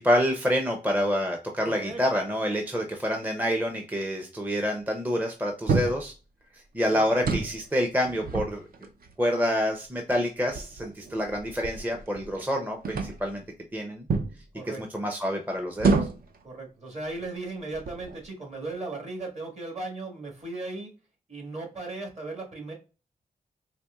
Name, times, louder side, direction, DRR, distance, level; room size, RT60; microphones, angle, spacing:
voice 1, 0.0-6.1 6.5-8.6 9.2-13.4 13.7-14.1 14.7-16.0, equal, 10° right, 3 dB, 0.5 m, -27 dB
voice 2, 1.6-2.0 6.9-7.2 14.5-14.8 16.4-20.9 21.3-22.7, right 2 dB, 45° right, 0 dB, 1.6 m, -37 dB
sound 1, 5.7-6.1 7.1-7.6 8.1-9.1 9.8-9.9 10.5-12.5 12.8-13.3 14.1-14.4 15.8-16.4 17.1-17.3 17.7-18.3, right 4 dB, 70° right, 0.5 m, -28 dB
4.2 x 2.9 x 2.3 m, 0.33 s
wide cardioid pair, 100°, 16 cm